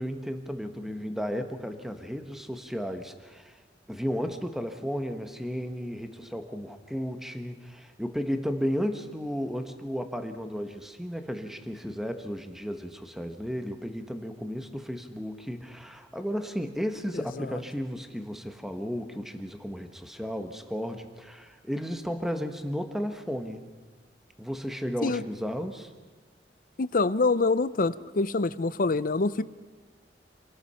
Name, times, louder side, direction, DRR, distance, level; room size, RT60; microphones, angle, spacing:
voice 1, 0.0-3.6 3.9-23.7 24.4-25.9, equal, ahead, 7 dB, 1.4 m, -34 dB
voice 2, 17.1-17.5 25.0-25.2 26.8-29.4, left 3 dB, 50° left, 16 dB, 0.7 m, -26 dB
28.0 x 18.0 x 5.7 m, 1.4 s
head